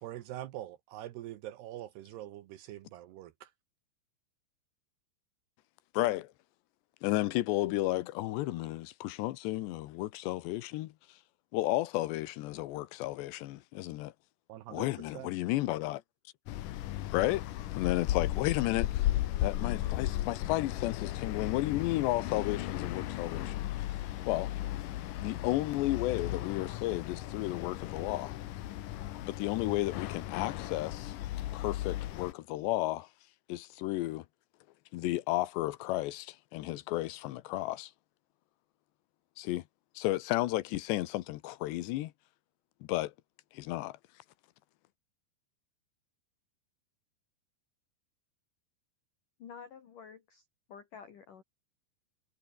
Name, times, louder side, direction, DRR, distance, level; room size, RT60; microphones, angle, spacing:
voice 1, 0.0-3.5 14.5-14.9 15.1-15.3, right 13 dB, 75° right, 3.1 m, -44 dB
voice 2, 5.9-6.3 7.0-11.2 11.5-14.1 14.7-16.0 17.1-17.5 17.7-19.1 19.4-24.5 25.2-28.4 29.3-31.1 31.5-33.1 33.5-34.3 34.9-37.9 39.4-39.6 40.0-42.1 42.9-43.1 43.5-44.0, left 17 dB, 90° left, 3.1 m, -33 dB
sound 1, 16.5-32.3, left 14 dB, 70° left, 2.1 m, -35 dB
voice 3, 49.4-51.4, left 6 dB, 55° left, 3.5 m, -50 dB
omnidirectional pair, 5.0 m